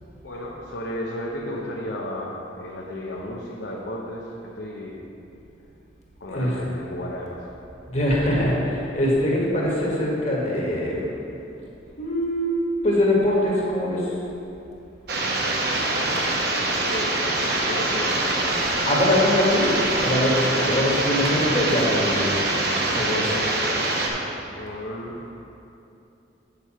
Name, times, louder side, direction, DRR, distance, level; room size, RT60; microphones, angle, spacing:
voice 1, 0.2-5.0 6.2-7.4 15.4-18.7 20.6-20.9 23.2-23.6 24.6-25.2, left 1 dB, 80° left, -4 dB, 0.9 m, -34 dB
voice 2, 7.9-11.0 12.0-12.5 12.8-14.1 18.8-19.8 20.0-22.4 22.9-23.3, left 1 dB, 40° left, -4 dB, 1.7 m, -22 dB
sound 1, 15.1-24.1, right 2 dB, 60° right, 1.1 m, -24 dB
8.2 x 6.8 x 4.4 m, 2.8 s
head